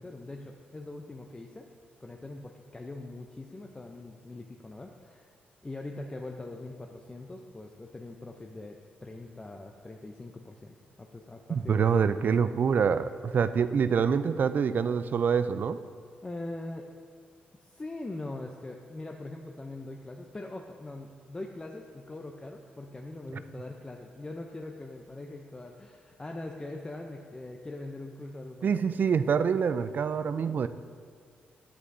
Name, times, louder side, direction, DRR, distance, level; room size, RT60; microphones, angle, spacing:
voice 1, 0.0-1.7 2.0-5.3 5.6-11.8 12.3-12.4 16.2-16.9 17.6-29.0, left 2 dB, 20° left, 2 dB, 0.5 m, -42 dB
voice 2, 11.5-15.8 28.6-30.7, right 6 dB, 50° right, 12 dB, 0.3 m, -26 dB
9.9 x 8.0 x 2.7 m, 2.1 s
cardioid pair, 75°, 4 cm